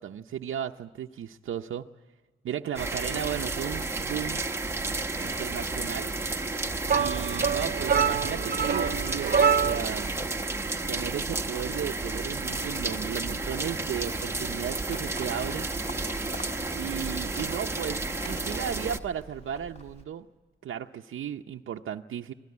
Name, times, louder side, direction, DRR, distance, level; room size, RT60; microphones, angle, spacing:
voice 1, 0.0-1.9 2.4-4.4 4.9-6.1 6.9-10.2 10.9-15.7 16.7-20.3 20.6-22.3, right 9 dB, 90° right, 3 dB, 0.7 m, -35 dB
sound 1, 2.8-19.0, right 2 dB, 10° right, 1.0 m, -32 dB
sound 2, 6.9-10.0, right 6 dB, 45° right, 0.9 m, -25 dB
Livestock farm animals working animals, 14.9-20.0, left 1 dB, 35° left, 3.5 m, -44 dB
25.5 x 17.0 x 9.5 m, 1.3 s
wide cardioid pair, 155°, 20 cm